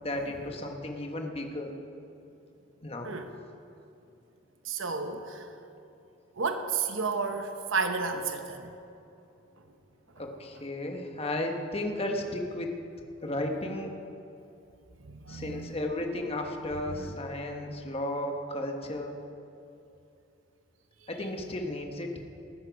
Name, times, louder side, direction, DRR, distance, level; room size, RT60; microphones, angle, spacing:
voice 1, 0.0-1.7 2.8-3.1 10.2-12.7 13.2-13.9 15.3-19.2 21.1-22.1, left 1 dB, 30° left, 3 dB, 1.3 m, -34 dB
voice 2, 4.6-5.6 6.3-8.7 9.6-9.7 15.0-15.7 16.9-17.1, right 4 dB, 85° right, 6 dB, 1.0 m, -32 dB
19.0 x 9.7 x 5.3 m, 2.7 s
head